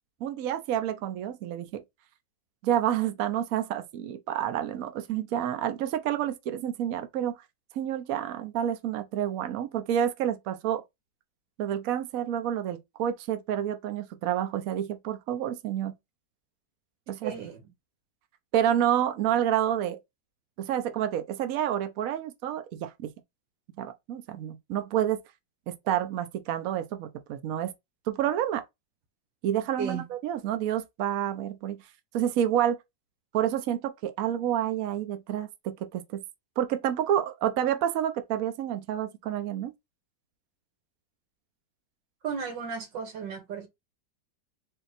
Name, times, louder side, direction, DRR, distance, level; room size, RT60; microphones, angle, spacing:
voice 1, 0.2-1.8 2.6-7.4 7.7-10.8 11.6-15.9 17.1-17.3 18.5-20.0 20.6-23.1 23.8-25.2 25.7-27.7 28.1-28.6 29.4-31.8 32.1-32.8 33.3-36.2 36.6-39.7, right 10 dB, 65° right, 0.9 m, -29 dB
voice 2, 17.2-17.6 29.8-30.0 42.2-43.7, right 6 dB, 85° right, 1.8 m, -34 dB
3.8 x 2.8 x 4.0 m
omnidirectional pair, 1.9 m